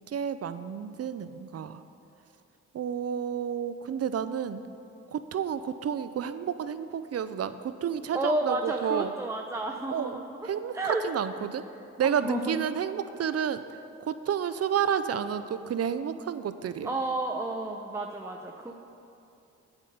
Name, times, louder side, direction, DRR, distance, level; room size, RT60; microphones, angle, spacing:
voice 1, 0.1-1.8 2.7-4.7 5.1-9.1 9.9-10.2 10.4-11.6 12.0-13.6 14.1-16.9, right 8 dB, 40° right, 12 dB, 0.6 m, -30 dB
voice 2, 8.1-10.5 10.7-11.0 12.0-12.6 16.8-18.7, right 2 dB, 10° right, 1 dB, 0.7 m, -31 dB
8.2 x 7.8 x 5.3 m, 2.7 s
hypercardioid pair, 45°, 37 cm